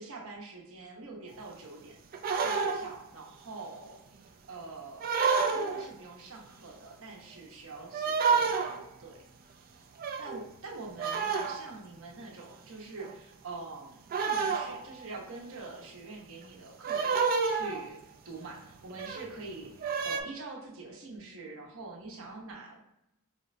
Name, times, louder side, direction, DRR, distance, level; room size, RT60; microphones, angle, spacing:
voice 1, 0.0-2.0 2.4-8.6 9.0-9.2 10.2-18.0 18.2-22.8, right 3 dB, 65° right, -1 dB, 0.8 m, -45 dB
sound 1, 2.1-3.0 5.0-5.9 7.9-8.8 10.0-10.4 11.0-11.7 13.0-13.1 14.1-15.0 16.8-18.0 18.9-19.3 19.8-20.2, right 5 dB, 40° right, 0.3 m, -29 dB
4.9 x 2.1 x 2.6 m, 0.85 s
head